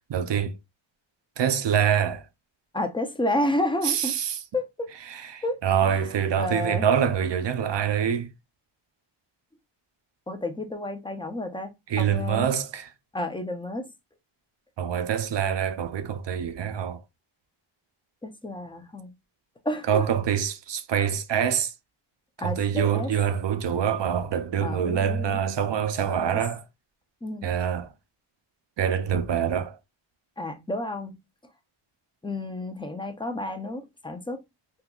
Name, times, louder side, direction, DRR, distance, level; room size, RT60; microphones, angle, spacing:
voice 1, 0.1-0.6 1.4-2.2 3.8-4.4 5.1-8.3 11.9-12.9 14.8-17.0 19.9-21.7 22.4-26.6 27.4-27.9 28.8-29.8, right 8 dB, 60° right, 0.5 m, -25 dB
voice 2, 2.7-4.1 4.5-4.9 5.4-6.0 6.4-6.9 10.3-12.5 13.1-13.9 18.2-19.1 19.6-20.0 22.4-23.1 24.6-25.4 26.1-26.4 27.2-27.5 30.4-31.1 32.2-34.4, left 1 dB, 10° left, 0.5 m, -31 dB
3.7 x 2.7 x 2.3 m
wide cardioid pair, 135°, 50 cm